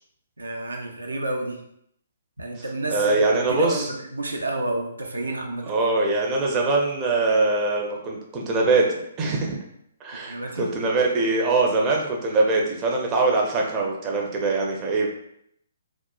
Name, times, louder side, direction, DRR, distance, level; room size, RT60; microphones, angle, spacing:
voice 1, 0.4-1.6 2.4-5.7 10.3-10.7, right 2 dB, 80° right, 2 dB, 0.4 m, -30 dB
voice 2, 2.9-3.9 5.7-9.5 10.0-15.1, right 3 dB, 25° right, -1 dB, 0.5 m, -22 dB
2.9 x 2.0 x 2.3 m, 0.72 s
figure-of-eight pair, 130°, 0 cm